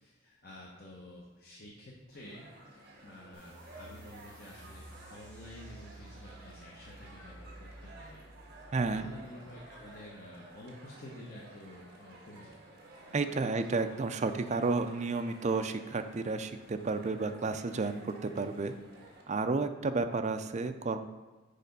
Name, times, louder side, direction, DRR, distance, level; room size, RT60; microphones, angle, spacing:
voice 1, 0.0-2.5 2.7-8.2 8.6-12.6 13.6-13.7, left 1 dB, 45° left, -3 dB, 1.0 m, -50 dB
sound 1, 2.1-19.2, right 2 dB, 50° right, 1.5 m, -53 dB
sound 2, 3.3-10.4, right 1 dB, 5° left, 2.2 m, -53 dB
voice 2, 8.7-9.1 13.1-18.7 19.3-21.1, right 3 dB, 35° right, 8 dB, 0.4 m, -31 dB
6.7 x 5.0 x 5.3 m, 1.2 s
head